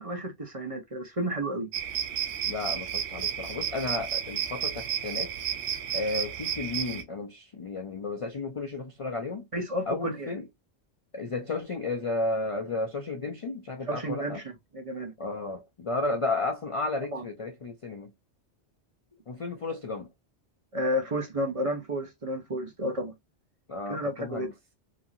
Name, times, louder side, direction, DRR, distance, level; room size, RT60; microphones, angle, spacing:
voice 1, 0.0-1.7 9.5-10.3 13.9-15.1 17.1-17.3 20.7-23.1 23.9-24.5, equal, 35° right, 0.8 m, -31 dB
sound 1, 1.7-7.0, right 9 dB, 85° right, 0.9 m, -32 dB
voice 2, 2.5-5.3 5.9-9.5 9.9-10.5 11.1-14.4 15.2-18.1 19.3-20.1 23.7-24.5, left 3 dB, 45° left, 0.4 m, -33 dB
3.1 x 2.7 x 2.4 m
omnidirectional pair, 1.1 m